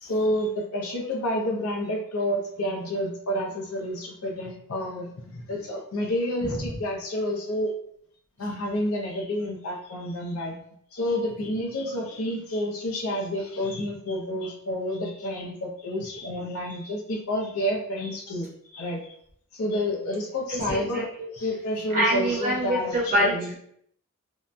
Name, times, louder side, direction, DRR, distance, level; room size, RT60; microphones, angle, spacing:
voice 1, 0.0-7.7 8.4-10.6 10.9-18.5 18.7-19.1 19.5-21.0 21.3-23.5, left 1 dB, 75° left, 0 dB, 0.6 m, -29 dB
voice 2, 20.5-21.3 21.9-23.6, right 1 dB, 35° right, -4 dB, 0.8 m, -26 dB
2.8 x 2.2 x 2.5 m, 0.67 s
head